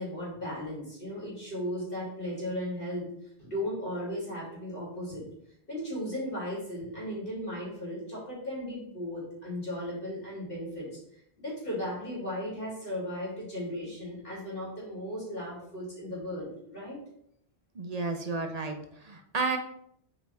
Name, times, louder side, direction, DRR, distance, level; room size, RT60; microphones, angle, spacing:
voice 1, 0.0-3.1 3.4-5.3 5.7-11.0 11.4-17.0, left 1 dB, 55° left, -6 dB, 3.1 m, -36 dB
voice 2, 17.7-19.6, right 3 dB, 40° right, 5 dB, 0.8 m, -32 dB
7.5 x 4.5 x 3.4 m, 0.72 s
omnidirectional pair, 1.1 m